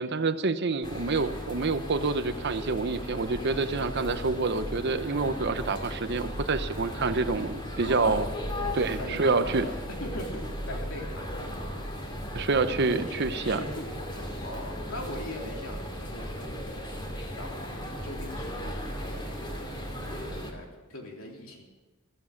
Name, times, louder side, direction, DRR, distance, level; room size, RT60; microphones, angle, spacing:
voice 1, 0.0-8.3 8.7-9.7 12.3-13.6, right 3 dB, 50° right, 11 dB, 0.8 m, -27 dB
sound 1, 0.8-20.5, equal, 20° left, 2.3 m, -36 dB
voice 2, 9.0-9.7 10.0-11.9 12.6-16.8 17.4-21.6, left 1 dB, 65° left, 1 dB, 3.3 m, -41 dB
14.5 x 14.5 x 6.5 m, 1.3 s
head